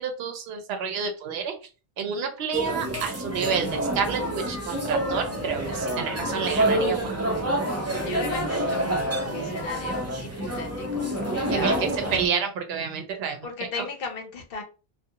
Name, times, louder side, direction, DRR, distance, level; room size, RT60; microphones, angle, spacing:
voice 1, 0.0-1.5 2.0-7.2 11.5-13.4, right 6 dB, 75° right, 5 dB, 0.8 m, -29 dB
sound 1, 2.5-12.3, right 1 dB, 20° right, 0.5 m, -27 dB
voice 2, 8.0-8.9 9.2-11.8 13.4-14.6, left 5 dB, 65° left, 4 dB, 0.8 m, -36 dB
2.4 x 2.2 x 2.7 m, 0.33 s
omnidirectional pair, 1.0 m